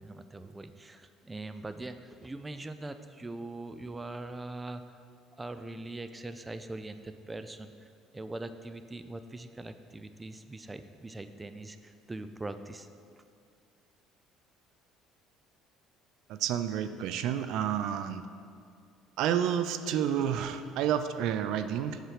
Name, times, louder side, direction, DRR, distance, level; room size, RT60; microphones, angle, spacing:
voice 1, 0.0-5.0 5.4-12.9, right 2 dB, 15° right, 10 dB, 0.5 m, -42 dB
voice 2, 16.3-18.2 19.2-22.0, right 9 dB, 70° right, 11 dB, 0.5 m, -30 dB
8.1 x 7.3 x 6.6 m, 2.2 s
supercardioid pair, 95°, 0 cm